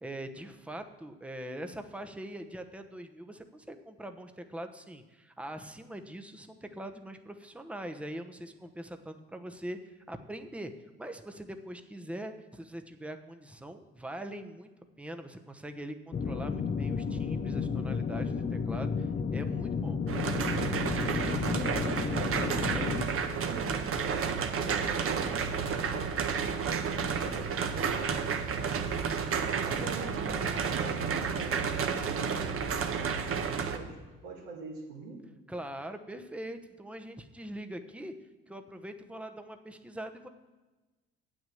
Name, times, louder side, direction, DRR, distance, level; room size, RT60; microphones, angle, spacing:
voice 1, 0.0-10.7 11.0-14.7 15.0-20.0 35.5-38.1 38.5-40.3, right 1 dB, 5° right, 7 dB, 1.0 m, -42 dB
sound 1, 16.1-23.1, left 5 dB, 25° left, 0.7 m, -32 dB
sound 2, 20.1-33.8, right 6 dB, 45° right, 1.2 m, -31 dB
voice 2, 21.0-29.0 29.3-34.0 34.2-35.2, right 3 dB, 80° right, -6 dB, 2.1 m, -45 dB
8.6 x 6.3 x 7.8 m, 1.2 s
hypercardioid pair, 60°, 31 cm